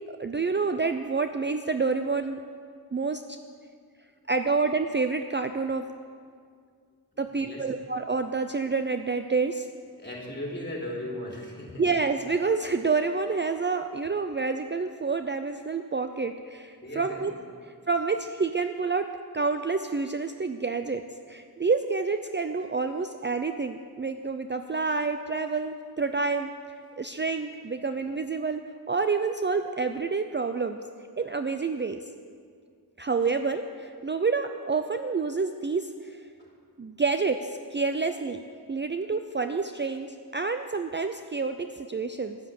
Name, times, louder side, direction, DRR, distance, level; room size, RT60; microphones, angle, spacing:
voice 1, 0.1-2.4 2.9-3.2 4.3-5.9 7.2-9.7 11.8-17.3 17.9-19.1 19.3-21.0 21.3-26.5 27.0-28.6 28.9-30.8 31.2-32.0 33.0-36.3 36.8-38.4 38.7-42.4, right 4 dB, 30° right, 8 dB, 0.5 m, -28 dB
voice 2, 10.0-11.8 16.8-17.3 36.4-36.6, left 1 dB, 25° left, -3 dB, 3.6 m, -37 dB
10.5 x 9.7 x 7.7 m, 2.1 s
wide cardioid pair, 50°, 39 cm